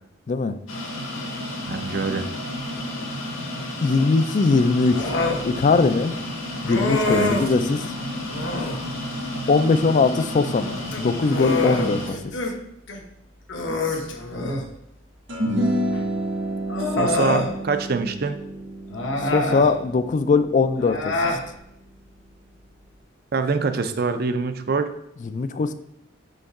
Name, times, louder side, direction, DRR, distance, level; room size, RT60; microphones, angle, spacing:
sound 1, 0.7-12.1, left 1 dB, 85° left, 1.3 m, -31 dB
voice 1, 1.7-2.2 7.1-7.3 16.9-18.4 23.3-24.9, right 4 dB, 50° right, 8 dB, 0.5 m, -24 dB
voice 2, 3.8-5.1 5.4-6.1 6.6-7.8 9.5-12.3 19.2-21.1 25.2-25.7, left 4 dB, 40° left, 11 dB, 0.3 m, -21 dB
Human voice, 4.9-5.4 6.7-7.6 8.3-8.8 10.8-12.5 12.9-13.0 13.5-14.7 15.9-16.0 16.7-17.5 18.9-19.7 20.8-21.4, left 2 dB, 70° left, 0.9 m, -25 dB
sound 2, 15.3-21.8, right 1 dB, 70° right, 1.6 m, -29 dB
5.4 x 5.3 x 3.6 m, 0.78 s
head